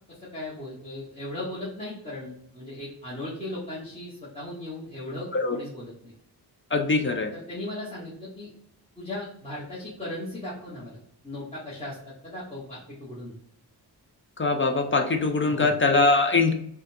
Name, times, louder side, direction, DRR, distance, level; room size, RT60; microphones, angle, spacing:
voice 1, 0.1-6.1 7.3-8.5 9.0-12.0 12.2-13.3 15.5-15.7, left 1 dB, 15° left, -9 dB, 1.1 m, -37 dB
voice 2, 6.7-7.3 14.4-16.5, left 3 dB, 30° left, 5 dB, 0.4 m, -22 dB
3.8 x 2.2 x 2.6 m, 0.72 s
wide cardioid pair, 115°, 42 cm